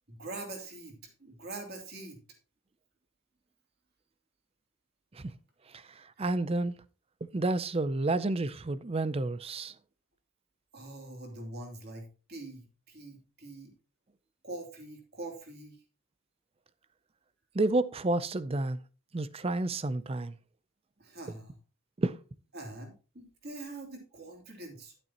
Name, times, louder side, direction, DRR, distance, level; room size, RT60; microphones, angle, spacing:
voice 1, 0.1-2.2 10.7-13.7 14.4-15.8 21.0-21.6 22.5-25.0, right 2 dB, 45° right, 3.0 m, -44 dB
voice 2, 5.7-6.8 7.3-9.7 17.5-18.8 19.1-20.3 22.0-22.2, right 2 dB, 25° right, 0.5 m, -30 dB
11.0 x 8.8 x 2.9 m
head